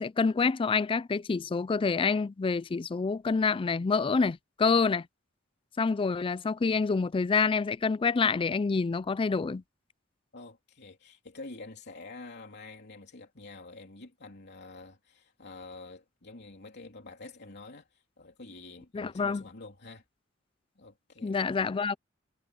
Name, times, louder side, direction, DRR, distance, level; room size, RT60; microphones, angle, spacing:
voice 1, 0.0-5.1 5.8-9.6 18.9-19.4 21.2-21.9, left 4 dB, 25° left, 0.3 m, -27 dB
voice 2, 10.3-20.0 20.7-21.4, left 3 dB, 55° left, 3.2 m, -47 dB
head